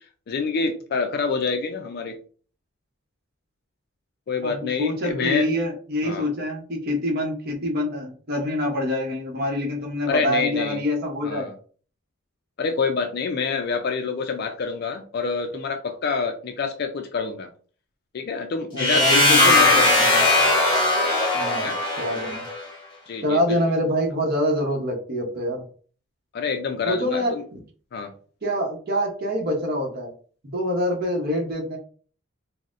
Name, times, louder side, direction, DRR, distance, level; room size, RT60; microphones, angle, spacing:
voice 1, 0.3-2.2 4.3-5.5 6.0-6.2 10.1-10.8 11.2-11.5 12.6-17.5 18.1-19.9 21.6-21.8 23.1-23.6 26.3-27.4 27.9-28.1, left 5 dB, 50° left, 5 dB, 0.3 m, -27 dB
voice 2, 4.4-11.5 18.7-20.2 21.3-21.7 22.0-22.4 23.2-25.6 26.9-27.6 28.4-30.1 30.4-31.8, left 1 dB, 45° right, 0 dB, 0.8 m, -26 dB
sound 1, 18.8-22.6, left 2 dB, 20° left, 1.0 m, -19 dB
3.8 x 2.0 x 2.5 m, 0.42 s
head